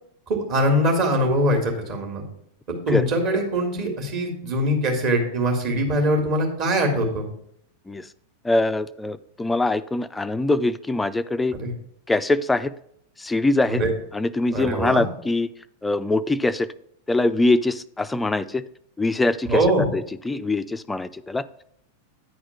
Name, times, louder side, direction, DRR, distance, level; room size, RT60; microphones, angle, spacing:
voice 1, 0.3-2.2 2.9-7.3 11.6-11.7 13.7-13.9 14.5-15.1 19.5-19.9, equal, 40° right, 1 dB, 2.1 m, -22 dB
voice 2, 8.4-11.5 12.1-12.7 13.2-13.8 14.1-15.5 15.8-16.7 17.1-18.6 19.0-19.6 19.9-21.4, left 2 dB, 10° left, 14 dB, 0.3 m, -23 dB
9.5 x 4.2 x 5.8 m, 0.71 s
figure-of-eight pair, 90°, 0 cm